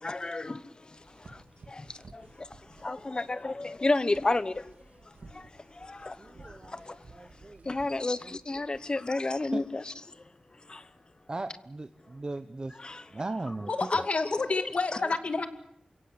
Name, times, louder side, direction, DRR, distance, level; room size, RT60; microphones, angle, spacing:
voice 1, 0.0-4.7 5.0-7.3 7.6-10.3 10.7-10.9 12.7-13.7, left 2 dB, 35° left, 1.1 m, -33 dB
sound 1, 0.9-9.7, right 3 dB, 70° right, 2.6 m, -56 dB
voice 2, 6.4-6.8 7.1-7.6 9.5-9.6 11.3-12.7 13.1-13.7, right 2 dB, 35° right, 0.9 m, -37 dB
voice 3, 13.7-15.5, left 3 dB, 55° left, 2.3 m, -29 dB
28.5 x 17.0 x 8.2 m
wide cardioid pair, 115°, 3 cm